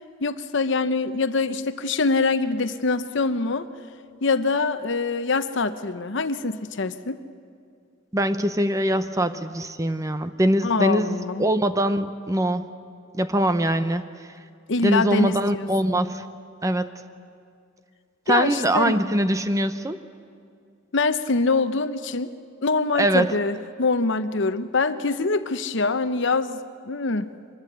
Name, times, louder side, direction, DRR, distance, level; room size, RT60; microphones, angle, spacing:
voice 1, 0.2-3.7 4.2-7.2 10.6-11.5 14.7-15.7 18.3-19.0 20.9-22.3 22.6-27.3, left 3 dB, 65° left, 11 dB, 0.8 m, -24 dB
voice 2, 8.1-12.6 13.1-14.3 14.8-16.3 16.6-16.9 18.3-20.0 22.9-23.3, right 1 dB, 15° right, 11 dB, 0.7 m, -23 dB
24.5 x 21.0 x 8.0 m, 2.3 s
head